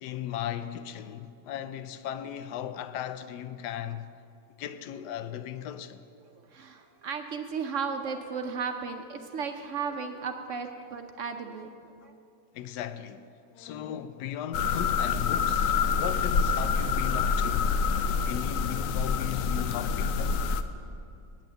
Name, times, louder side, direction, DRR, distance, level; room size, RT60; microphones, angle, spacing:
voice 1, 0.0-4.1 4.6-6.0 12.5-17.8 18.3-20.4, left 10 dB, 90° left, 1.2 m, -36 dB
voice 2, 6.2-12.1, right 6 dB, 60° right, 0.8 m, -35 dB
sound 1, 14.5-20.6, left 5 dB, 70° left, 0.9 m, -27 dB
9.1 x 7.6 x 9.0 m
omnidirectional pair, 1.7 m